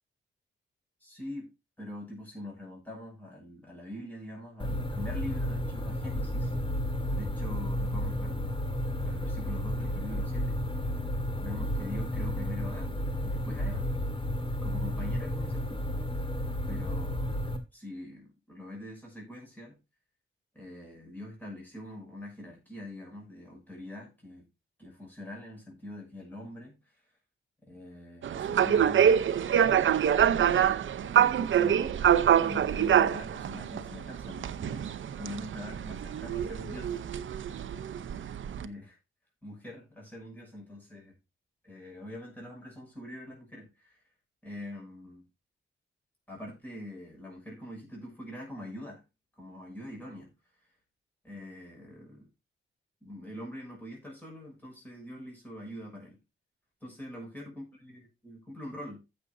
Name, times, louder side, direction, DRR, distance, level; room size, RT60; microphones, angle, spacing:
voice 1, 1.0-1.5 1.8-6.5 7.1-8.5 9.1-10.6 11.4-13.9 14.6-15.8 16.7-17.3 17.7-19.8 20.5-24.5 24.8-27.0 27.6-30.0 31.0-32.0 32.4-37.0 37.5-37.8 38.1-38.2 38.6-39.0 39.4-41.1 41.6-44.0 44.4-45.2 46.3-49.0 49.4-50.3 51.2-52.3 53.0-56.2 56.8-57.9 58.2-59.0, left 1 dB, 10° left, 6.1 m, -44 dB
sound 1, 4.6-17.6, left 1 dB, 25° left, 1.9 m, -32 dB
sound 2, 28.2-38.7, right 9 dB, 70° right, 0.7 m, -26 dB
15.0 x 6.8 x 2.6 m
wide cardioid pair, 130°, 21 cm